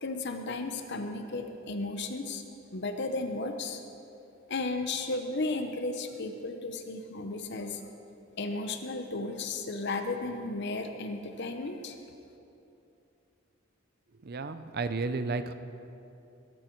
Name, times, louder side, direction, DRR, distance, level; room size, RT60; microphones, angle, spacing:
voice 1, 0.0-2.4 2.7-3.8 4.5-7.8 8.4-12.0, left 3 dB, 55° left, 6 dB, 0.8 m, -34 dB
voice 2, 14.3-15.5, right 3 dB, 50° right, 10 dB, 0.6 m, -32 dB
21.0 x 11.0 x 4.6 m, 2.8 s
head